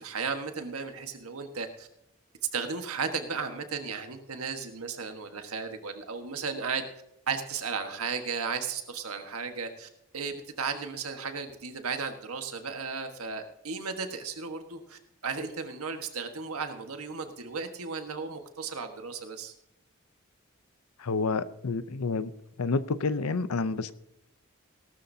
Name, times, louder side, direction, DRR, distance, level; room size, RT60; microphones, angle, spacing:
voice 1, 0.0-1.9 2.5-6.8 7.3-19.5, right 5 dB, 85° right, 1.4 m, -35 dB
voice 2, 21.0-22.3 22.6-23.9, left 4 dB, 90° left, 0.6 m, -29 dB
17.5 x 12.5 x 2.8 m
head